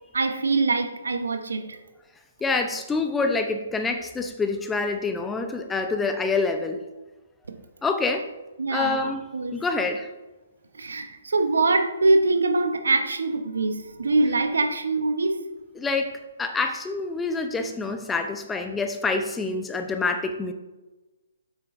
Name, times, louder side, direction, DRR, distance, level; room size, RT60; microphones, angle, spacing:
voice 1, 0.1-1.8 8.6-9.6 10.7-15.4, right 3 dB, 80° right, 6 dB, 1.0 m, -23 dB
voice 2, 2.4-6.8 7.8-8.3 8.7-9.3 9.5-10.1 15.7-20.5, left 3 dB, 10° left, 6 dB, 0.7 m, -26 dB
9.3 x 7.5 x 2.6 m, 1.1 s
figure-of-eight pair, 135°, 0 cm